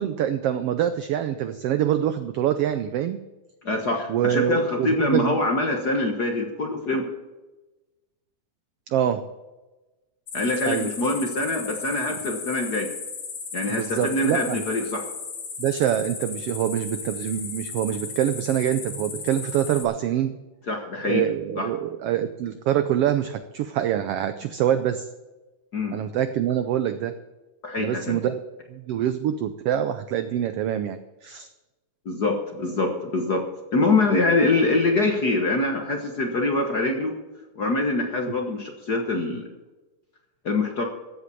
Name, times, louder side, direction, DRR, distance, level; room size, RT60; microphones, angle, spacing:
voice 1, 0.0-3.2 4.1-5.4 8.9-9.2 10.7-10.9 12.1-12.2 13.7-14.6 15.6-20.4 21.0-25.1 25.9-27.1 27.8-28.4 28.7-31.5, right 10 dB, 90° right, 10 dB, 1.3 m, -25 dB
voice 2, 3.6-7.1 10.3-12.9 13.5-15.0 20.7-21.2 21.6-21.7 25.7-26.0 27.6-28.2 32.0-33.4 33.7-37.1 37.5-39.5 40.4-40.8, left 2 dB, 50° left, 3 dB, 1.3 m, -24 dB
sound 1, 10.3-19.8, left 5 dB, 70° left, 3.7 m, -36 dB
14.5 x 8.1 x 7.0 m, 1.1 s
omnidirectional pair, 3.5 m